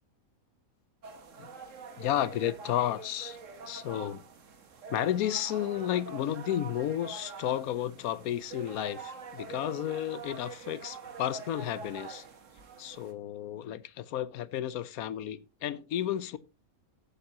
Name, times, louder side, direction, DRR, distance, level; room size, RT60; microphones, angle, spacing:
sound 1, 1.0-13.1, right 5 dB, 60° right, 1.6 m, -45 dB
voice 1, 2.0-3.4 3.7-4.2 4.9-12.2 12.8-16.4, left 11 dB, 85° left, 1.1 m, -32 dB
14.0 x 8.4 x 2.9 m
omnidirectional pair, 1.5 m